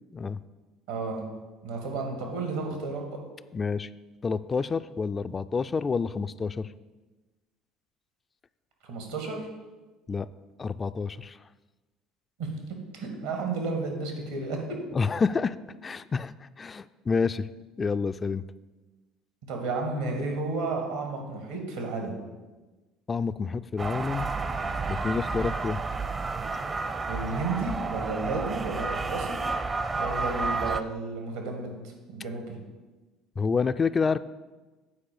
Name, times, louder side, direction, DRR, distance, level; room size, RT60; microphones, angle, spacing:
voice 1, 0.9-1.2 1.6-3.2 8.8-9.5 12.4-12.5 12.9-14.6 19.5-22.2 27.1-29.4 29.9-31.7 32.1-32.6, right 3 dB, 80° right, 2 dB, 2.1 m, -32 dB
voice 2, 3.5-3.9 4.2-6.7 10.1-10.3 10.6-11.4 14.9-15.6 15.8-17.5 17.8-18.4 23.1-24.3 24.9-25.8 33.4-34.2, left 5 dB, 30° left, 12 dB, 0.3 m, -28 dB
sound 1, 23.8-30.8, right 4 dB, 30° right, 0.6 m, -31 dB
8.5 x 4.8 x 7.1 m, 1.2 s
hypercardioid pair, 60°, 0 cm